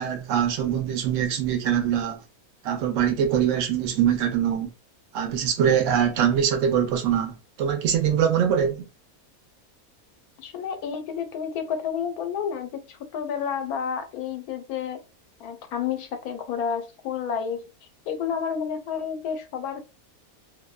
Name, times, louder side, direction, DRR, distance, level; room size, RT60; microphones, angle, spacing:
voice 1, 0.0-2.2 2.6-4.7 5.1-8.9, right 9 dB, 70° right, 0.8 m, -23 dB
voice 2, 10.4-15.0 15.4-17.7 18.1-19.8, left 7 dB, 85° left, 1.1 m, -30 dB
2.6 x 2.1 x 2.2 m
omnidirectional pair, 1.6 m